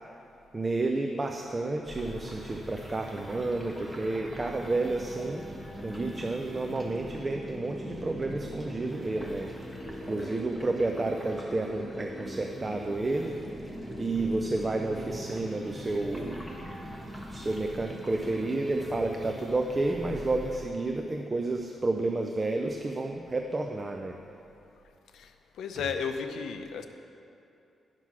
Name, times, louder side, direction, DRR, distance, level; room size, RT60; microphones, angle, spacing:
voice 1, 0.5-5.5 5.8-9.5 10.0-13.4 14.0-16.6 17.2-24.2 25.8-26.0, right 2 dB, 20° right, 3 dB, 0.5 m, -31 dB
sound 1, 1.9-20.6, equal, 5° left, 1.3 m, -41 dB
voice 2, 25.6-26.9, left 6 dB, 85° left, 7 dB, 0.6 m, -33 dB
10.0 x 6.1 x 5.9 m, 2.6 s
cardioid pair, 125°, 0 cm